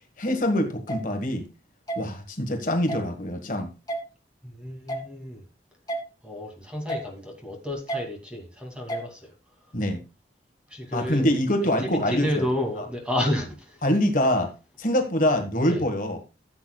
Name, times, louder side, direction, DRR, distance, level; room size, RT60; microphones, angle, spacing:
voice 1, 0.2-1.4 1.9-3.7 9.7-10.0 10.9-12.5 12.8-12.9 13.8-14.5 14.8-16.2, left 1 dB, 50° left, 1.5 m, -24 dB
sound 1, 0.9-1.0 1.9-2.0 2.9-3.0 3.9-4.0 4.9-5.1 5.9-6.0 6.9-7.1 7.9-8.0 8.9-9.1, right 1 dB, 20° left, 2.1 m, -30 dB
voice 2, 4.4-5.4 6.2-9.3 10.7-11.3 11.8-13.8 15.7-15.8, left 1 dB, 5° right, 2.5 m, -31 dB
15.0 x 7.9 x 2.3 m
head